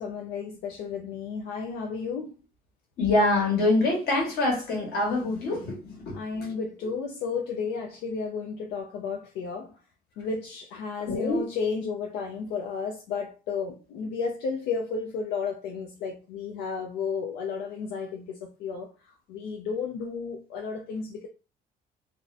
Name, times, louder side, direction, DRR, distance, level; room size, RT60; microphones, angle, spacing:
voice 1, 0.0-2.4 6.1-9.8 10.2-21.3, left 5 dB, 90° left, 0.4 m, -33 dB
voice 2, 3.0-6.5 11.1-11.4, left 2 dB, 65° left, 1.2 m, -25 dB
2.5 x 2.0 x 2.5 m
cardioid pair, 110°, 17 cm